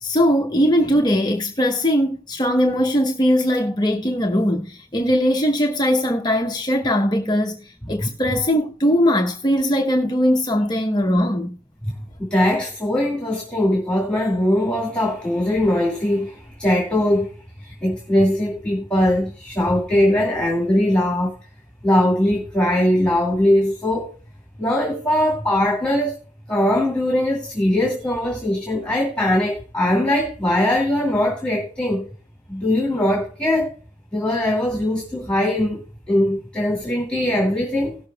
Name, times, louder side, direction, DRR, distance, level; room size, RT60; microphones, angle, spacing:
voice 1, 0.0-11.6, equal, 25° left, 0.9 m, -20 dB
voice 2, 12.2-17.3 17.8-21.3 21.8-24.1 24.6-26.1 26.5-32.1 32.5-33.7 34.1-38.0, left 1 dB, 5° left, 2.4 m, -20 dB
18.0 x 6.7 x 2.3 m
head